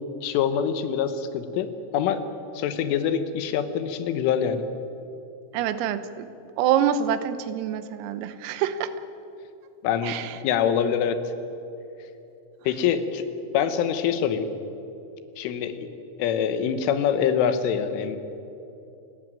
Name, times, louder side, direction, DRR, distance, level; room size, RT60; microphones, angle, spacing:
voice 1, 0.2-2.3 2.6-4.6 9.8-10.2 10.4-11.2 12.7-13.2 13.5-14.5 15.4-15.9 16.2-18.2, left 8 dB, 80° left, 10 dB, 3.5 m, -25 dB
voice 2, 5.5-6.3 6.6-8.9 10.0-10.4, right 9 dB, 85° right, 12 dB, 3.7 m, -26 dB
29.0 x 13.0 x 9.1 m, 2.8 s
omnidirectional pair, 5.8 m